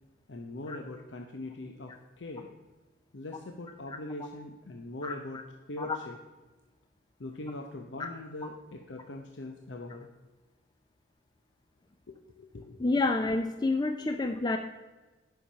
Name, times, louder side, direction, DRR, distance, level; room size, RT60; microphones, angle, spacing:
voice 1, 0.3-2.5 3.1-5.4 5.7-6.2 7.2-10.1 12.1-12.9 14.3-14.4, left 2 dB, 80° left, 3 dB, 0.8 m, -41 dB
voice 2, 12.8-14.6, left 3 dB, 25° left, 6 dB, 0.4 m, -28 dB
10.0 x 5.8 x 5.6 m, 1.2 s
head